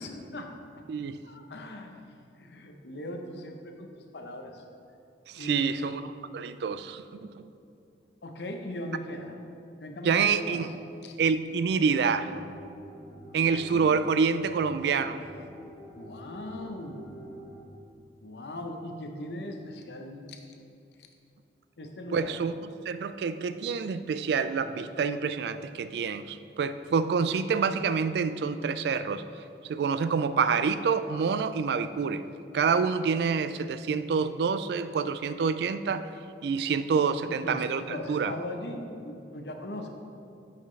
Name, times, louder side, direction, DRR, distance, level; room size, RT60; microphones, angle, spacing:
voice 1, 0.0-0.8 1.2-4.6 5.4-6.1 8.2-9.4 9.8-10.7 11.0-11.2 13.6-14.0 15.9-17.1 18.2-20.4 21.8-22.4 37.4-39.9, left 1 dB, 75° left, 4 dB, 0.7 m, -39 dB
voice 2, 5.3-6.0 6.3-7.5 10.1-10.7 11.2-12.3 13.3-15.2 22.1-22.5 22.9-29.2 29.7-32.2 32.5-36.1 36.4-38.4, right 5 dB, 75° right, 13 dB, 0.3 m, -27 dB
sound 1, 12.0-17.6, equal, 5° right, 1.4 m, -48 dB
8.8 x 5.7 x 3.2 m, 2.5 s
head